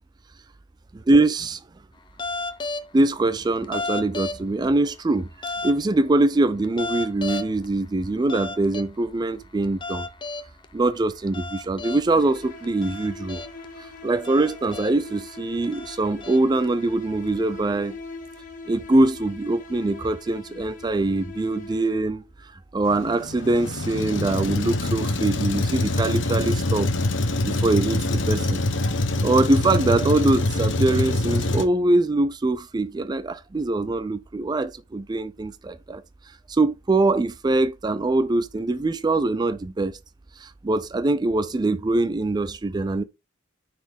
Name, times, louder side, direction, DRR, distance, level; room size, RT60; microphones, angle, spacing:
voice 1, 0.9-1.6 2.9-10.1 10.7-13.4 13.8-17.9 18.7-26.9 27.4-28.6 29.2-36.0 36.5-40.0 40.4-43.0, right 2 dB, 20° right, 0.3 m, -23 dB
sound 1, 2.2-2.9 3.6-4.7 5.4-5.8 6.6-7.7 8.3-8.9 9.6-10.7 11.3-12.1 12.6-13.7 14.2-15.1 15.6-16.7, left 3 dB, 25° left, 0.6 m, -32 dB
sound 2, 12.1-22.3, left 4 dB, 45° left, 1.2 m, -42 dB
Truck, 22.9-31.7, left 2 dB, 65° left, 0.9 m, -25 dB
9.6 x 4.2 x 3.4 m
head